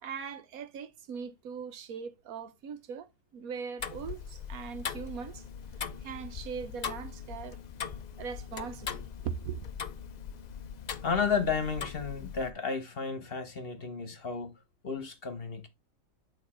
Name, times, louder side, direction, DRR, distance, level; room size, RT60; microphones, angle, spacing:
voice 1, 0.0-5.4 6.0-7.6 8.2-9.6, right 7 dB, 85° right, 1.3 m, -40 dB
Tick-tock, 3.8-12.5, left 7 dB, 70° left, 0.4 m, -40 dB
voice 2, 11.0-14.5 14.8-15.7, left 5 dB, 45° left, 1.2 m, -32 dB
8.7 x 3.1 x 4.3 m
omnidirectional pair, 1.5 m